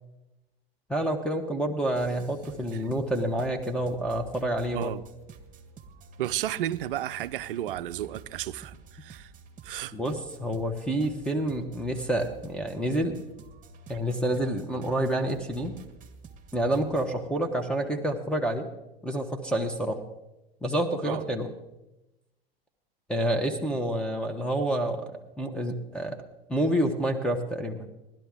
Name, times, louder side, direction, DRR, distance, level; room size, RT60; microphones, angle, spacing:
voice 1, 0.9-4.9 9.9-13.2 13.9-15.7 16.5-18.7 19.0-20.0 20.6-21.5 23.1-25.1 25.4-26.2 26.5-27.9, right 1 dB, 5° left, 1.2 m, -28 dB
sound 1, 2.0-17.2, right 4 dB, 25° right, 1.4 m, -50 dB
voice 2, 4.7-5.1 6.2-9.3 9.6-9.9 21.0-21.2, right 13 dB, 60° right, 0.6 m, -33 dB
18.0 x 12.0 x 3.7 m
figure-of-eight pair, 85°, 30 cm